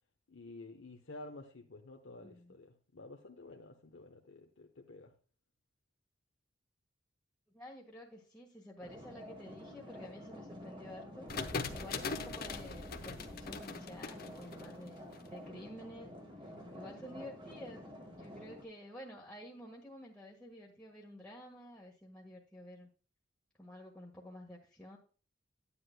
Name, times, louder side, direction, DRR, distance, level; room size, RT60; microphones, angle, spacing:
voice 1, 0.3-5.1, left 2 dB, 80° left, 2 dB, 0.9 m, -51 dB
voice 2, 2.2-2.6 7.5-11.3 11.7-16.1 16.4-17.9 18.2-22.9 23.6-25.0, equal, 5° left, -4 dB, 1.5 m, -51 dB
sound 1, 8.8-18.6, equal, 25° right, 1.9 m, -49 dB
sound 2, 11.3-15.2, left 4 dB, 50° left, 0.9 m, -41 dB
9.8 x 9.6 x 2.2 m, 0.39 s
head